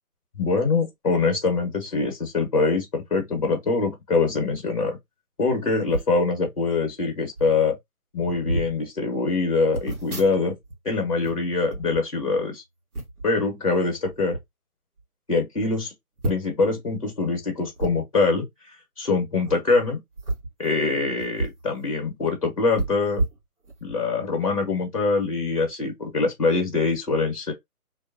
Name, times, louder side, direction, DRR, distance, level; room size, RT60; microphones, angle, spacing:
voice 1, 0.3-5.0 5.4-7.8 8.1-10.5 10.8-12.6 13.2-14.4 15.3-15.9 16.2-20.0 20.6-23.2 23.8-27.5, left 3 dB, 25° left, 0.9 m, -24 dB
sound 1, 5.9-6.2 7.0-7.1 7.3-7.6 8.2-8.7 9.7-10.8 11.1-12.4 12.9-13.3 14.0-14.4 15.0-15.1 15.3-15.4 16.2-16.7 17.8-17.9 19.4-19.6 20.1-21.6 22.0-22.1 22.7-24.0 24.4-24.6, right 2 dB, 70° right, 1.4 m, -31 dB
2.6 x 2.2 x 2.5 m
figure-of-eight pair, 165°, 46 cm